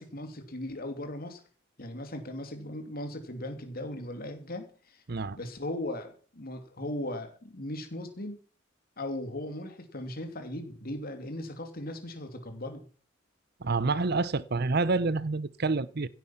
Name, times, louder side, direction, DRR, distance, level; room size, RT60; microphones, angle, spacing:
voice 1, 0.0-1.4 1.8-5.0 5.3-8.4 9.0-12.8, left 1 dB, 50° left, 2.8 m, -38 dB
voice 2, 13.6-16.1, right 3 dB, 55° right, 0.8 m, -28 dB
16.0 x 9.3 x 5.9 m
head